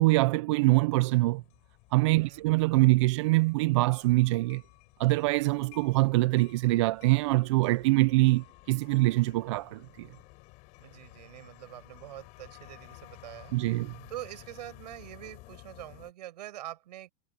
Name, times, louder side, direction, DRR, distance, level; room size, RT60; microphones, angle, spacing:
voice 1, 0.0-1.4 1.9-4.6 5.0-10.1 13.5-13.9, right 21 dB, 45° right, 0.5 m, -24 dB
sound 1, 1.2-16.1, left 24 dB, 35° left, 4.8 m, -54 dB
voice 2, 2.1-2.4 10.8-17.1, right 14 dB, 75° right, 7.7 m, -45 dB
supercardioid pair, 175°, 21 cm